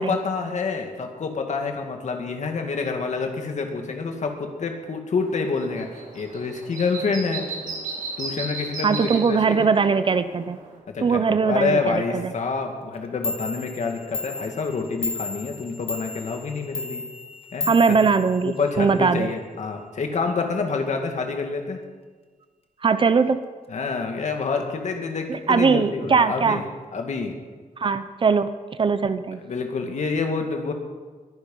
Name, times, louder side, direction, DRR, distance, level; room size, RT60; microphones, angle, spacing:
voice 1, 0.0-5.9 6.1-7.5 8.2-9.7 10.9-17.1 17.5-18.0 18.4-21.8 23.7-26.6 26.9-27.4 29.4-30.7, left 4 dB, 60° left, 4 dB, 2.2 m, -27 dB
sound 1, 5.2-10.8, right 3 dB, 75° right, 3.1 m, -36 dB
voice 2, 8.8-10.6 11.0-12.3 17.7-19.3 22.8-23.4 25.3-26.6 27.8-28.5 28.8-29.4, right 5 dB, 40° right, 12 dB, 0.6 m, -20 dB
Clock, 12.9-13.0 13.2-18.9, left 3 dB, 45° left, 1.3 m, -34 dB
21.5 x 10.5 x 5.5 m, 1.4 s
wide cardioid pair, 170°, 14 cm